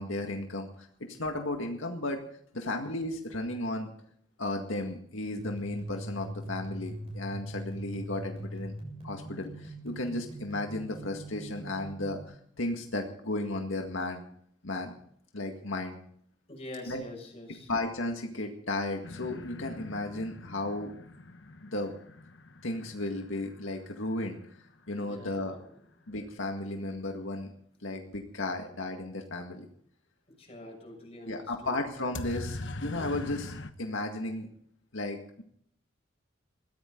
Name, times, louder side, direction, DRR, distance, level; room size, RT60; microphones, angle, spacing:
voice 1, 0.0-2.2 2.5-3.9 4.4-8.7 9.0-14.2 14.6-14.9 15.3-16.0 16.9-17.0 17.7-20.9 21.6-21.9 22.6-24.4 24.9-25.6 26.1-27.5 27.8-29.7 31.3-34.5 34.9-35.4, left 2 dB, 85° left, 3 dB, 1.9 m, -34 dB
sound 1, 5.4-12.2, right 1 dB, 30° right, 7.0 m, -41 dB
voice 2, 16.5-17.7 25.0-25.7 30.3-31.8 33.0-33.2, left 1 dB, 30° left, 1 dB, 6.7 m, -45 dB
sound 2, 19.0-24.8 32.1-33.7, left 2 dB, 65° left, 1.2 m, -42 dB
21.5 x 15.5 x 3.9 m, 0.65 s
head